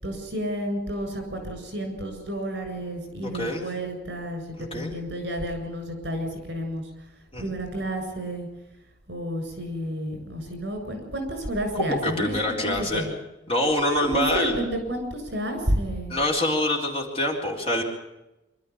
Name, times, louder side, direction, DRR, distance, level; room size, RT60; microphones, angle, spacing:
voice 1, 0.0-6.9 7.4-8.5 9.1-13.1 13.8-16.2, right 1 dB, 65° right, 5 dB, 7.6 m, -31 dB
voice 2, 3.3-3.7 4.6-4.9 7.3-7.5 11.8-13.0 13.5-14.6 16.1-17.8, left 1 dB, 30° left, 0 dB, 4.0 m, -25 dB
25.5 x 13.0 x 8.7 m, 0.96 s
head